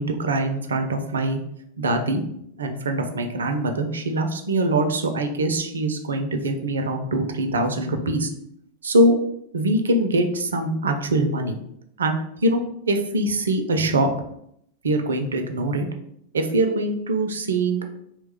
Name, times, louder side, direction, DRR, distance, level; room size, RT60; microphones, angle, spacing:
voice 1, 0.0-1.4 1.8-2.2 2.6-8.3 8.8-9.1 9.5-11.6 12.0-14.1 14.8-15.9 16.3-17.8, right 1 dB, 70° right, 5 dB, 0.4 m, -23 dB
2.9 x 2.2 x 3.5 m, 0.72 s
figure-of-eight pair, 90°, 0 cm